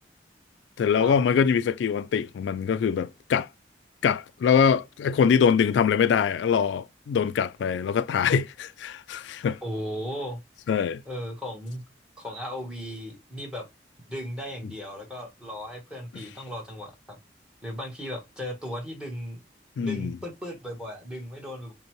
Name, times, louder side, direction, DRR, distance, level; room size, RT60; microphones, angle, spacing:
voice 1, 0.8-3.5 4.0-9.6 10.7-11.0 16.1-16.2 19.8-20.1, left 7 dB, 85° left, 0.3 m, -23 dB
voice 2, 9.6-10.4 11.0-11.8 12.2-13.7 14.1-17.2 17.6-19.4 19.8-21.7, equal, 5° right, 1.3 m, -36 dB
5.2 x 2.2 x 3.0 m
head